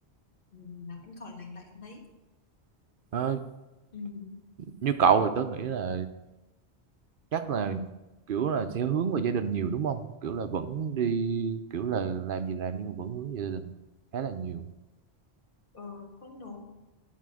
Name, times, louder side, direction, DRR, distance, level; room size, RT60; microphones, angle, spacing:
voice 1, 0.5-2.0 3.9-4.4 15.7-16.6, left 4 dB, 55° left, 0 dB, 1.8 m, -43 dB
voice 2, 4.6-6.1 7.3-7.9 8.3-13.7 14.1-14.7, right 7 dB, 60° right, 9 dB, 0.7 m, -29 dB
10.5 x 4.0 x 6.2 m, 1.0 s
omnidirectional pair, 1.1 m